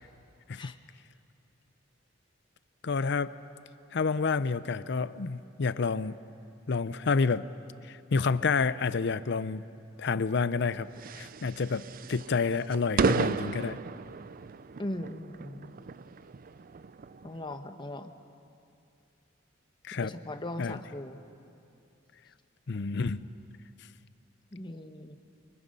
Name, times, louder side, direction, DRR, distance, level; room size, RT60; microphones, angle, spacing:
voice 1, 2.8-3.3 3.9-6.2 6.7-7.5 7.8-9.6 10.0-10.9 11.1-13.8 19.8-20.1 20.6-20.8 22.7-23.3, left 4 dB, 60° left, 15 dB, 0.6 m, -29 dB
sound 1, 10.5-17.6, right 4 dB, 45° right, 0.4 m, -34 dB
voice 2, 14.8-15.7 17.2-18.1 20.0-21.2 24.5-25.2, left 1 dB, 25° left, 7 dB, 1.1 m, -39 dB
30.0 x 24.0 x 5.4 m, 2.6 s
head